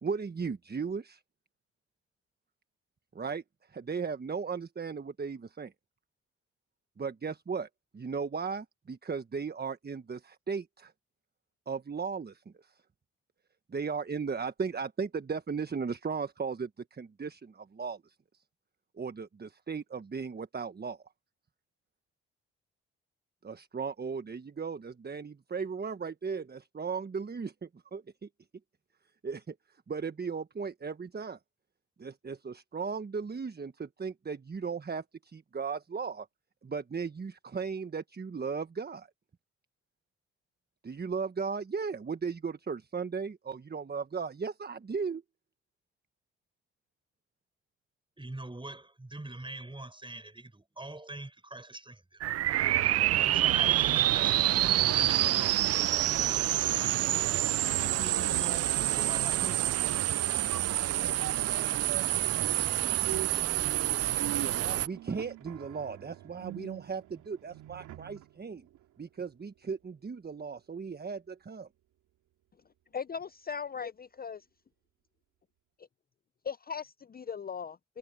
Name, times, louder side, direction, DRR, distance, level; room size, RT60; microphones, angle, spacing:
voice 1, 0.0-1.2 3.1-3.4 3.7-5.7 7.0-7.7 7.9-10.9 11.7-12.7 13.7-18.1 19.0-21.0 23.4-28.3 29.2-29.5 29.9-31.4 32.0-36.3 36.6-39.1 40.8-45.2 60.9-61.2 64.4-68.7 69.0-71.7, right 5 dB, 30° right, 1.4 m, -36 dB
voice 2, 48.2-52.2 52.5-55.5 55.9-57.5 57.9-59.8, right 2 dB, 15° right, 7.0 m, -44 dB
sound 1, 52.2-64.9, right 13 dB, 50° right, 0.5 m, -27 dB
sound 2, 59.8-68.3 68.7-68.8, right 13 dB, 75° right, 3.1 m, -43 dB
voice 3, 72.9-74.4 76.4-78.0, left 6 dB, 30° left, 0.7 m, -38 dB
hypercardioid pair, 45°, 31 cm